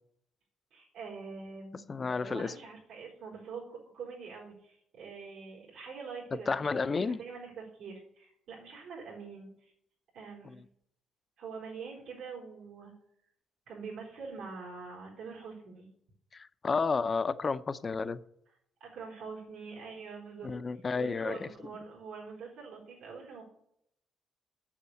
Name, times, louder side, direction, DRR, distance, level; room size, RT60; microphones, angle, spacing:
voice 1, 0.7-1.8 2.2-9.7 10.1-10.6 11.4-12.9 13.7-15.9 18.8-23.4, right 5 dB, 85° right, 4.4 m, -45 dB
voice 2, 1.9-2.5 6.5-7.2 16.3-18.2 20.4-21.5, left 4 dB, 35° left, 0.6 m, -31 dB
8.6 x 6.8 x 8.4 m
cardioid pair, 90°, 0 cm